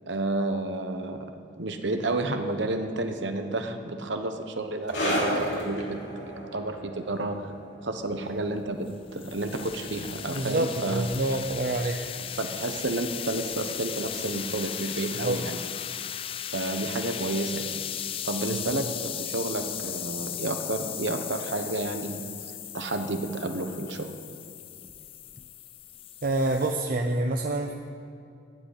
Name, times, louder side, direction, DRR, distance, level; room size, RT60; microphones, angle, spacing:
voice 1, 0.1-7.5 7.8-11.1 12.4-15.6 16.5-17.8 18.2-22.2 22.7-24.1, right 2 dB, 65° right, 6 dB, 1.2 m, -31 dB
sound 1, 4.9-11.9 12.1-12.4 13.1-13.2, equal, 65° left, 3.1 m, -34 dB
sound 2, 8.5-26.7, left 10 dB, 30° left, 0.3 m, -37 dB
voice 2, 10.3-12.0 15.2-15.4 18.5-18.8 26.2-27.7, right 2 dB, 50° right, 2 dB, 0.7 m, -27 dB
12.5 x 8.1 x 9.9 m, 2.5 s
head